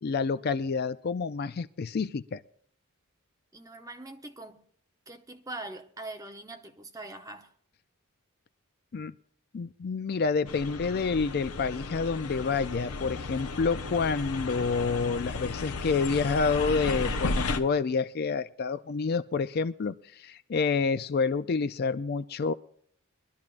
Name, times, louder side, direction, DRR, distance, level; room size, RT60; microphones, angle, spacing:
voice 1, 0.0-2.4 8.9-9.1 9.5-22.5, left 4 dB, 45° left, 0.4 m, -28 dB
voice 2, 3.5-4.6 5.1-7.5, right 2 dB, 15° right, 0.9 m, -42 dB
sound 1, 10.5-17.6, left 3 dB, 85° left, 0.8 m, -34 dB
22.5 x 12.0 x 2.5 m
head